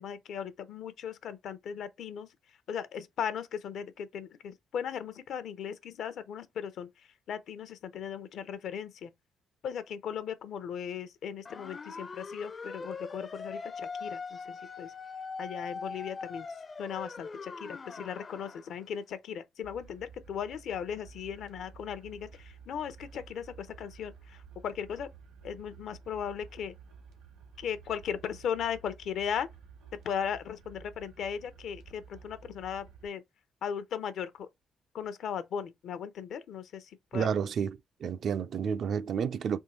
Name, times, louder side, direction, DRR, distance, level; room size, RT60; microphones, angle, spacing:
voice 1, 0.0-2.3 2.7-6.9 7.3-9.1 9.6-14.9 15.4-16.5 16.8-22.3 22.7-24.1 24.6-25.1 25.4-26.7 27.6-29.5 30.0-33.2 33.6-34.5 34.9-36.8 37.1-37.3, left 8 dB, 70° left, 0.7 m, -37 dB
sound 1, 11.5-18.7, left 4 dB, 35° left, 0.5 m, -41 dB
sound 2, 19.6-33.1, right 6 dB, 85° right, 1.6 m, -53 dB
voice 2, 37.1-39.6, right 7 dB, 60° right, 0.4 m, -31 dB
3.6 x 3.0 x 4.2 m
cardioid pair, 90°, 0 cm